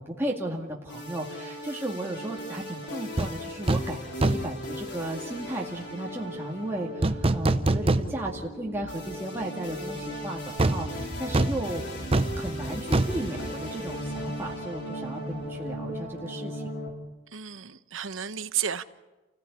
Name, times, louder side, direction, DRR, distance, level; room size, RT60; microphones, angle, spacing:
voice 1, 0.0-11.8 12.4-16.9, right 1 dB, 10° right, -3 dB, 2.2 m, -35 dB
sound 1, 0.9-16.9, equal, 60° left, 4.5 m, -38 dB
sound 2, 3.2-3.3 3.7-3.9 4.2-4.6 7.0-8.4 8.8-8.9 10.6-14.2 14.5-14.7, right 2 dB, 30° right, 0.7 m, -26 dB
voice 2, 17.3-18.8, right 9 dB, 85° right, 12 dB, 1.0 m, -32 dB
29.5 x 16.0 x 8.4 m, 1.1 s
head